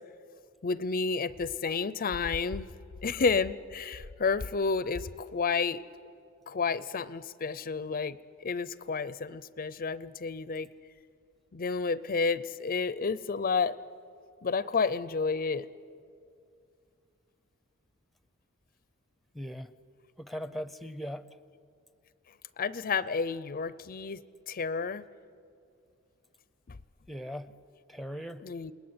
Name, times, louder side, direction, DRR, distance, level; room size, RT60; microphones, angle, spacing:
voice 1, 0.6-2.7 3.0-5.8 6.5-10.7 11.5-13.8 14.4-15.7 22.6-24.2 24.5-25.1 26.7-26.8 28.4-28.7, left 4 dB, 40° left, 17 dB, 0.5 m, -30 dB
voice 2, 19.3-19.7 20.2-21.3 27.1-27.5 27.9-28.4, equal, ahead, 14 dB, 0.7 m, -39 dB
28.5 x 20.5 x 9.6 m, 2.5 s
head